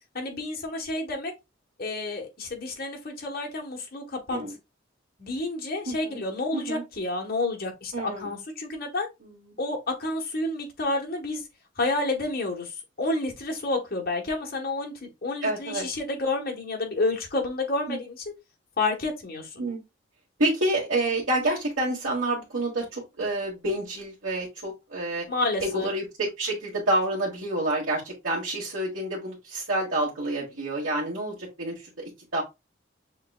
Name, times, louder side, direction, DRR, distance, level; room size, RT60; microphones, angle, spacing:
voice 1, 0.1-1.3 1.8-4.4 5.2-9.1 9.6-11.4 11.8-18.3 18.8-19.6 25.3-25.9, left 2 dB, 45° left, 1.3 m, -30 dB
voice 2, 5.9-6.2 6.5-6.8 7.9-8.3 9.2-9.6 15.4-15.9 17.9-18.0 19.6-19.8 20.4-25.3 25.6-32.4, right 1 dB, 70° right, 1.4 m, -28 dB
6.5 x 2.9 x 2.3 m
head